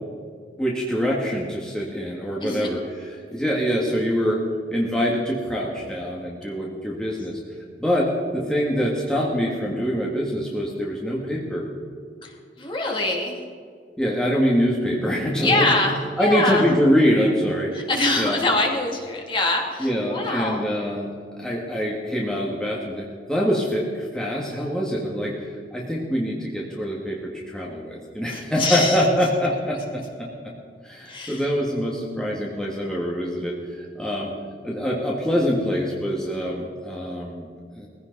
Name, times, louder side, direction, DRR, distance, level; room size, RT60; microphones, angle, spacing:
voice 1, 0.6-4.4 4.7-7.4 7.8-11.7 14.0-15.7 16.2-17.9 18.1-18.4 19.8-30.5 30.8-34.3 34.6-37.5 37.7-37.9, equal, 5° left, -4 dB, 2.0 m, -24 dB
voice 2, 2.4-2.7 12.2-13.4 15.4-16.6 17.7-20.6 28.3-29.0 31.1-31.4, left 2 dB, 30° left, -1 dB, 2.8 m, -24 dB
21.0 x 16.0 x 4.1 m, 2.1 s
head